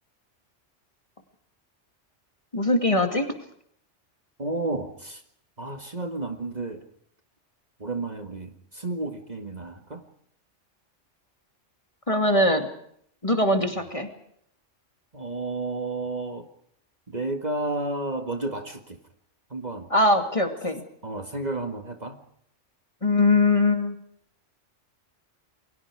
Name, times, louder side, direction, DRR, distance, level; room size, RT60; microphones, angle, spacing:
voice 1, 2.5-3.3 12.1-12.7 13.2-14.1 19.9-20.8 23.0-23.9, left 2 dB, 25° left, 6 dB, 2.4 m, -21 dB
voice 2, 4.4-5.2 5.6-6.8 7.8-10.0 15.1-16.5 17.1-19.0 19.5-19.9 21.0-22.2, right 2 dB, 35° right, 6 dB, 2.0 m, -31 dB
29.0 x 22.5 x 4.8 m, 0.67 s
omnidirectional pair, 1.2 m